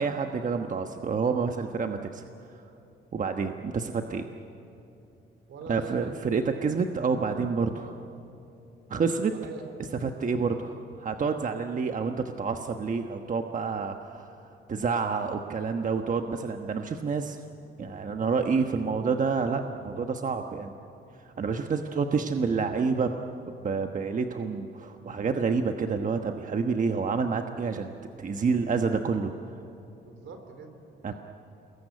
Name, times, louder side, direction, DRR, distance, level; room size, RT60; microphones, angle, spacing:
voice 1, 0.0-2.2 3.1-4.2 5.7-8.0 8.9-9.3 10.0-14.4 14.7-17.4 17.8-20.7 21.2-23.1 23.6-27.9 28.2-29.3 31.0-31.1, right 5 dB, 40° right, 5 dB, 1.2 m, -28 dB
voice 2, 5.5-6.1 9.3-9.8 21.9-22.2 30.0-31.1, right 4 dB, 75° right, 6 dB, 3.9 m, -44 dB
27.0 x 21.5 x 9.7 m, 2.8 s
cardioid pair, 90°, 20 cm